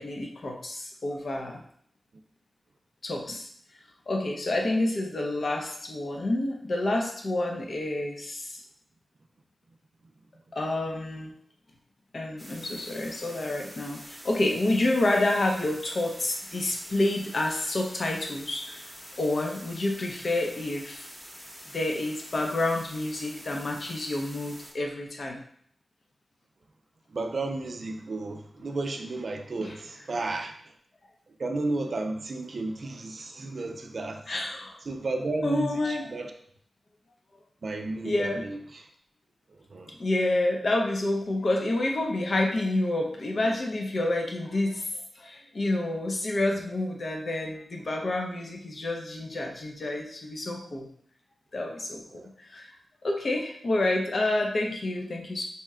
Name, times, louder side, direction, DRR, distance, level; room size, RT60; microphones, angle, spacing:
voice 1, 0.0-1.6 3.0-3.5 4.1-8.6 10.5-11.3 12.1-18.8 19.2-21.1 21.7-25.4 29.6-29.7 34.3-34.8 35.4-36.1 38.0-38.4 40.0-50.9 51.5-52.7 53.0-55.4, left 2 dB, 55° left, 1 dB, 0.7 m, -29 dB
sound 1, 12.4-24.7, equal, 5° left, 0.9 m, -46 dB
voice 2, 27.1-30.5 31.4-34.2 34.9-36.3 37.6-38.9 39.5-39.9 52.1-52.3, right 2 dB, 55° right, 3 dB, 0.4 m, -33 dB
4.2 x 2.2 x 3.6 m, 0.63 s
wide cardioid pair, 100°, 0 cm